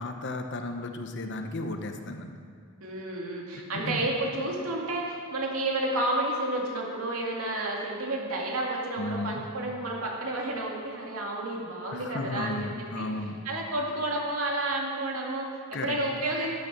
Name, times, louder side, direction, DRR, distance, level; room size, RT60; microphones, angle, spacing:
voice 1, 0.0-2.3 3.7-4.0 9.0-9.4 11.9-13.4 15.7-16.0, left 2 dB, 55° left, 6 dB, 1.0 m, -34 dB
voice 2, 2.8-13.1 13.4-16.5, right 1 dB, 85° right, -2 dB, 2.3 m, -31 dB
12.0 x 9.6 x 6.1 m, 2.2 s
head